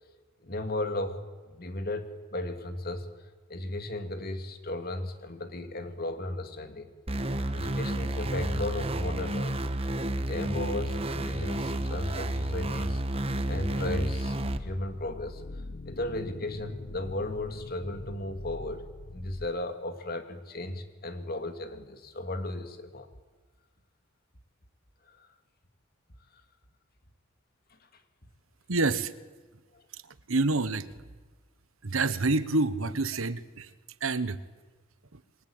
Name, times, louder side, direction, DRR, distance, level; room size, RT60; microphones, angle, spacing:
voice 1, 0.4-3.1 3.5-6.9 7.5-9.6 10.1-13.0 13.5-15.4 15.9-18.8 19.1-23.1 25.0-25.3 27.9-28.0 29.7-29.8, left 1 dB, 45° left, 7 dB, 2.6 m, -35 dB
sound 1, 7.1-14.6, right 1 dB, 30° right, 1.2 m, -31 dB
sound 2, 14.4-19.5, left 2 dB, 60° left, 0.9 m, -44 dB
voice 2, 28.7-29.1 29.9-31.0 31.8-33.7 34.0-34.4 35.1-35.2, right 3 dB, 80° right, 14 dB, 1.2 m, -28 dB
28.5 x 23.0 x 8.9 m, 1.3 s
head